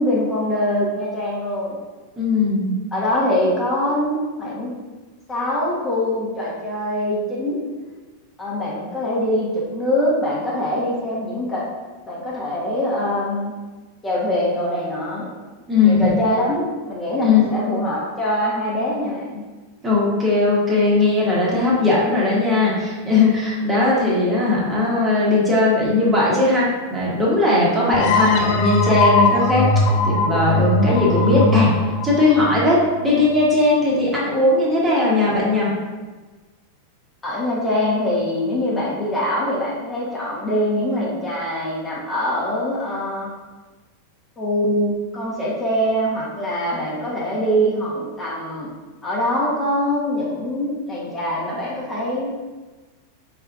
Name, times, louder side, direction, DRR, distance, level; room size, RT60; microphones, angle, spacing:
voice 1, 0.0-1.7 2.9-4.7 5.3-7.6 8.4-11.6 12.0-13.5 14.0-15.2 15.8-19.4 37.2-43.3 44.4-48.7 49.0-52.3, left 1 dB, 15° left, -7 dB, 1.1 m, -23 dB
voice 2, 2.2-2.7 15.7-16.0 17.2-17.5 19.8-29.7 30.0-31.7 32.0-35.7, left 2 dB, 15° right, -6 dB, 1.3 m, -18 dB
sound 1, 27.9-33.4, left 2 dB, 40° left, 0.4 m, -20 dB
5.4 x 3.4 x 2.5 m, 1.3 s
figure-of-eight pair, 90°, 0 cm